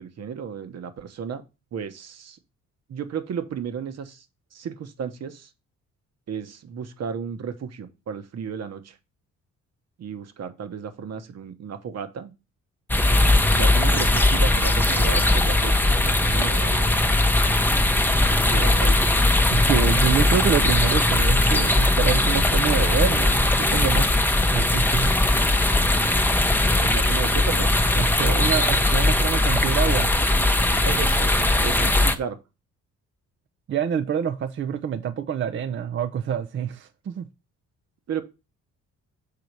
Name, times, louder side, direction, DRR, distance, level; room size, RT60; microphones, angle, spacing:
voice 1, 0.0-1.4 1.7-2.4 2.9-4.2 4.5-5.5 6.3-9.0 10.0-12.3 13.5-17.0 18.3-19.1 26.8-27.7 30.8-32.4 38.1-38.2, right 7 dB, 55° right, 1.1 m, -33 dB
sound 1, 12.9-32.2, left 2 dB, 5° left, 0.7 m, -19 dB
voice 2, 19.5-24.2 24.5-25.1 27.9-30.1 31.8-31.9 33.7-37.2, right 8 dB, 40° right, 0.5 m, -26 dB
7.0 x 3.9 x 4.6 m
cardioid pair, 90°, 30 cm